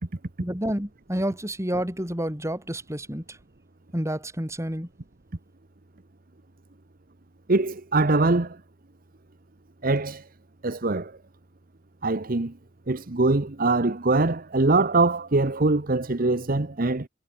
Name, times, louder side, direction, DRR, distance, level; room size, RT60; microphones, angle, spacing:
voice 1, 0.4-3.4 3.9-4.9, right 1 dB, 15° right, 4.4 m, -29 dB
voice 2, 7.5-8.6 9.8-10.2 10.6-11.1 12.0-12.5 12.9-17.1, right 2 dB, 45° right, 1.0 m, -23 dB
head